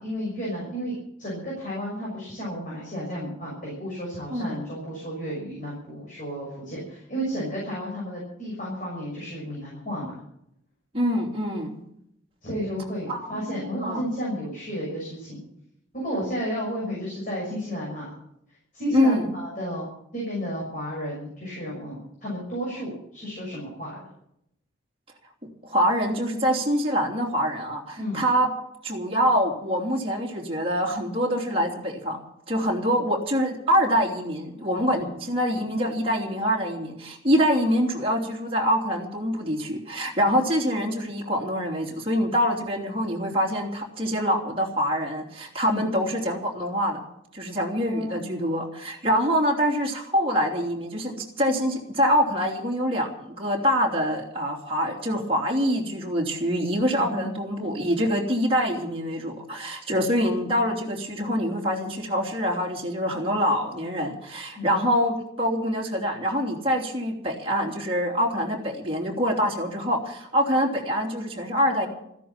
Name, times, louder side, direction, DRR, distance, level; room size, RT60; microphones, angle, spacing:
voice 1, 0.0-10.2 12.4-15.4 15.9-18.1 18.7-19.9 20.1-24.0 27.9-28.2 35.0-35.1 45.7-45.8 47.8-48.4 57.0-57.3 64.5-64.8, equal, 40° left, -4 dB, 6.3 m, -32 dB
voice 2, 10.9-11.7 13.1-14.0 18.9-19.3 25.6-28.5 28.8-32.2 32.5-47.0 47.3-71.9, equal, 30° right, -1 dB, 3.1 m, -25 dB
14.5 x 10.5 x 8.8 m, 0.76 s
head